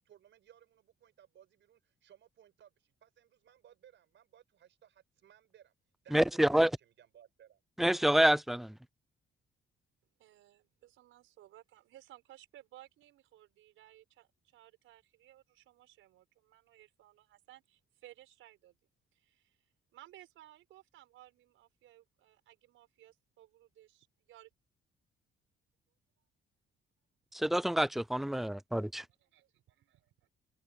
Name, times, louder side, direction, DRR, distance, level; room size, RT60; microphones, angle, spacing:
voice 1, 0.0-5.7 6.0-7.6, right 10 dB, 70° right, 5.7 m, -62 dB
voice 2, 6.1-6.7 7.8-8.7 27.3-29.0, right 1 dB, ahead, 0.3 m, -27 dB
voice 3, 10.2-18.8 19.1-19.6 19.9-24.5 29.2-30.3, right 14 dB, 85° right, 6.2 m, -59 dB
cardioid pair, 90°, 20 cm